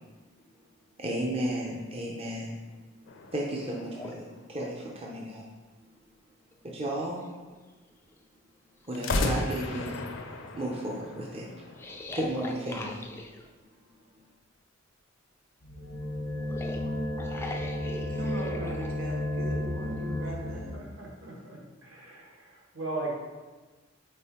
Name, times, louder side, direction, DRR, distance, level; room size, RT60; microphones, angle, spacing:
voice 1, 1.0-2.6 3.3-5.4 6.6-7.2 8.9-9.9 10.5-11.7 12.1-13.0 13.9-14.0, right 1 dB, 30° right, -2 dB, 0.6 m, -33 dB
sound 1, 3.1-4.9 8.9-12.0, left 2 dB, 65° left, 0.6 m, -34 dB
sound 2, 4.0-4.2 6.0-6.1 6.5-7.6 8.1-8.2 8.8-10.0 11.8-13.5 16.3-18.9, left 2 dB, 10° left, 0.3 m, -42 dB
sound 3, 15.6-20.8, left 1 dB, 85° left, 0.9 m, -33 dB
voice 2, 18.2-20.8, right 1 dB, 85° right, -2 dB, 0.9 m, -38 dB
voice 3, 20.5-23.1, right 2 dB, 65° right, -3 dB, 1.6 m, -38 dB
5.3 x 4.4 x 4.3 m, 1.3 s
head